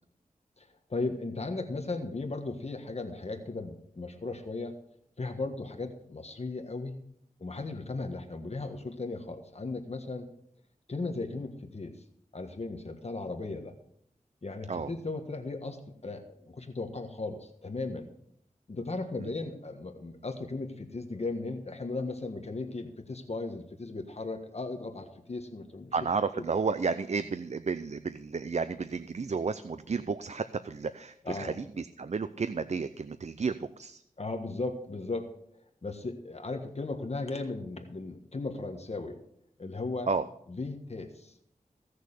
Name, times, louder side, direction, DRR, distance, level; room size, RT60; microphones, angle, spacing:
voice 1, 0.6-4.7 5.2-6.9 7.4-10.3 10.9-11.9 12.3-13.7 14.4-18.1 18.7-25.9 31.2-31.5 34.2-35.3 35.8-39.2 39.6-40.1 40.5-41.3, left 3 dB, 50° left, 5 dB, 1.4 m, -36 dB
voice 2, 25.9-34.0 40.1-40.3, right 5 dB, 55° right, 12 dB, 0.5 m, -32 dB
16.5 x 6.6 x 6.6 m, 0.70 s
wide cardioid pair, 80°, 14 cm